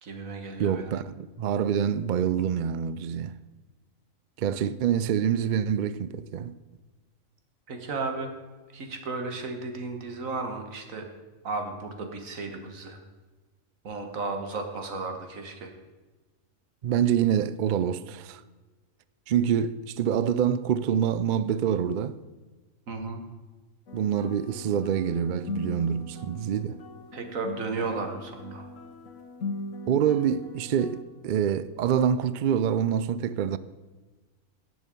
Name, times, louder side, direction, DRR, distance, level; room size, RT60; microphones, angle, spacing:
voice 1, 0.0-0.9 7.7-8.3 8.7-11.1 11.4-13.0 13.8-15.7 22.9-23.2 27.1-28.7, right 3 dB, 70° right, 1.8 m, -34 dB
voice 2, 0.6-3.4 4.4-6.5 16.8-18.4 19.3-22.2 23.9-26.8 29.9-33.6, right 8 dB, 90° right, 0.4 m, -26 dB
sound 1, 23.9-31.0, left 3 dB, 65° left, 1.4 m, -40 dB
18.0 x 6.3 x 5.3 m
omnidirectional pair, 1.4 m